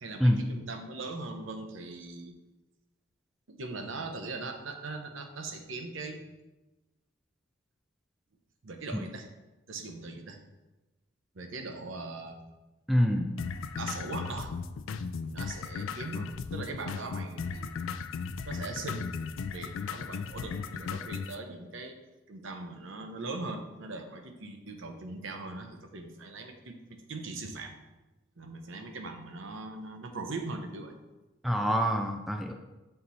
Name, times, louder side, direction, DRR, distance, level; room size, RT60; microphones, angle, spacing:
voice 1, 0.0-2.3 3.5-6.2 8.6-9.3 9.7-10.4 11.3-12.4 13.8-14.5 15.3-17.9 18.5-19.1 19.5-22.0 22.3-27.8 28.4-31.0, right 3 dB, 70° right, 4 dB, 0.8 m, -40 dB
voice 2, 12.9-13.4 31.4-32.5, equal, ahead, 3 dB, 0.3 m, -26 dB
sound 1, 13.4-21.4, left 5 dB, 75° left, 0.3 m, -36 dB
6.6 x 4.0 x 4.3 m, 1.1 s
head